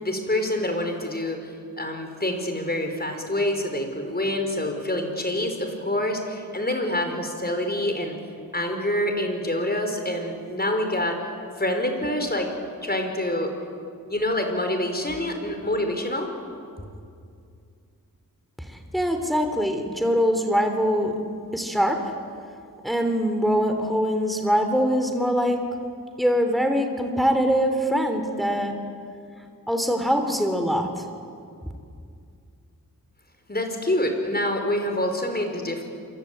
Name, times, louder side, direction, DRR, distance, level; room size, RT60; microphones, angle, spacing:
voice 1, 0.0-1.5 1.8-8.1 8.5-11.2 11.6-12.5 12.8-13.5 14.1-16.3 33.5-35.8, left 1 dB, 25° left, 5 dB, 5.3 m, -26 dB
voice 2, 18.6-21.1 21.5-22.0 22.8-25.6 26.2-28.7 29.7-31.0, equal, ahead, 5 dB, 3.2 m, -23 dB
28.0 x 24.0 x 8.8 m, 2.4 s
cardioid pair, 65°, 35 cm